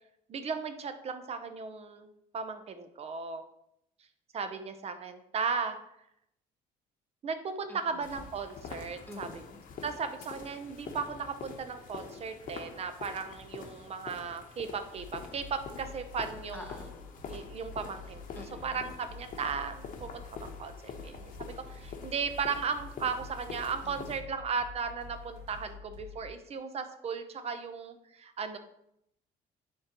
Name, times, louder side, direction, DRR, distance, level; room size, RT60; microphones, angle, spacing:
voice 1, 0.3-3.4 4.3-5.8 7.2-9.3 9.8-16.7 17.3-28.6, right 5 dB, 40° right, 9 dB, 0.7 m, -36 dB
voice 2, 7.7-8.0 9.1-9.6 16.5-17.2 18.3-18.9 23.8-24.1, left 2 dB, 10° left, 2 dB, 1.1 m, -48 dB
sound 1, 8.0-24.2, left 5 dB, 55° left, 0.9 m, -46 dB
sound 2, 14.9-26.3, left 4 dB, 60° right, 2.5 m, -48 dB
9.4 x 3.7 x 3.0 m, 0.77 s
cardioid pair, 110°, 17 cm